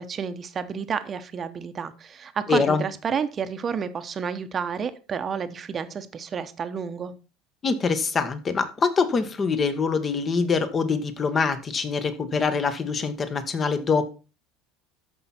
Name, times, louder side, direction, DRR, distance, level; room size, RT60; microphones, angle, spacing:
voice 1, 0.0-7.1, right 6 dB, 30° right, 1.0 m, -30 dB
voice 2, 2.5-2.8 7.6-14.0, left 5 dB, 25° left, 1.4 m, -24 dB
13.5 x 5.7 x 4.4 m
supercardioid pair, 130°, 0 cm